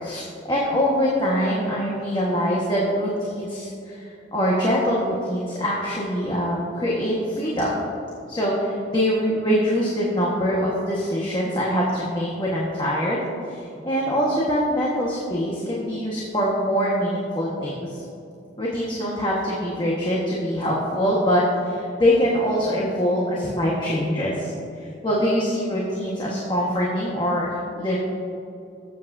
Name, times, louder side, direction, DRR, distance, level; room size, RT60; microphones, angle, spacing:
voice 1, 0.0-4.0 4.3-7.7 8.3-13.2 13.5-18.0 18.6-24.5 25.0-27.5 27.7-28.0, equal, 25° left, -5 dB, 1.4 m, -23 dB
18.5 x 8.5 x 2.7 m, 2.7 s
head